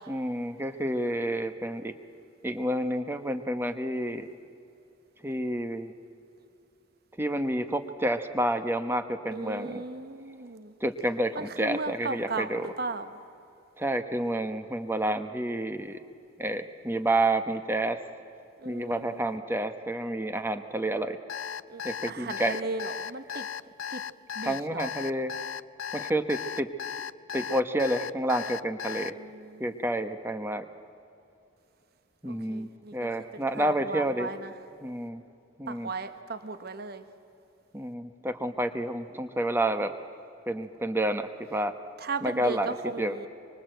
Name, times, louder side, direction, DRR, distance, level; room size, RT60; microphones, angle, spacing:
voice 1, 0.1-1.9 2.4-4.3 5.2-5.9 7.2-9.8 10.8-12.7 13.8-16.0 16.4-18.0 18.6-21.2 21.8-22.6 24.4-25.3 25.9-26.7 27.3-29.2 29.6-30.6 32.2-34.3 34.8-35.2 35.6-35.9 37.7-39.9 40.5-41.7 42.2-43.1, right 1 dB, 10° right, 9 dB, 1.1 m, -29 dB
voice 2, 9.3-10.7 11.3-13.2 18.6-19.2 21.7-21.8 22.1-23.5 23.9-24.0 24.3-24.9 29.1-29.8 32.2-33.1 33.5-34.5 35.7-37.0 42.0-43.3, right 3 dB, 50° right, 10 dB, 1.1 m, -36 dB
Alarm, 21.3-29.1, left 8 dB, 80° left, 0.5 m, -36 dB
24.5 x 24.5 x 7.9 m, 2.7 s
head